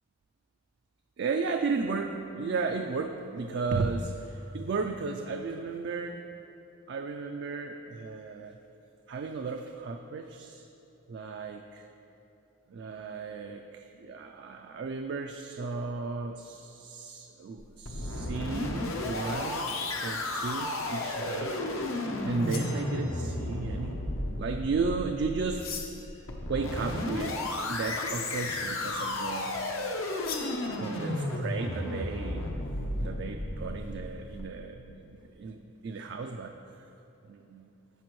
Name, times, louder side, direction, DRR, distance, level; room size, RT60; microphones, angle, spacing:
voice 1, 1.2-6.2 6.9-8.6 9.1-10.6 11.1-11.9 12.7-19.7 20.0-21.6 22.3-24.0 24.4-25.7 26.5-27.4 27.7-29.6 30.8-32.6 33.0-36.6 37.3-37.7, right 4 dB, 55° right, 4 dB, 0.3 m, -34 dB
sound 1, 17.6-34.4, left 1 dB, 75° left, 0.8 m, -33 dB
sound 2, 22.4-23.3 25.5-26.2 30.2-30.7, left 6 dB, 45° left, 0.9 m, -40 dB
15.0 x 5.2 x 3.1 m, 2.9 s
head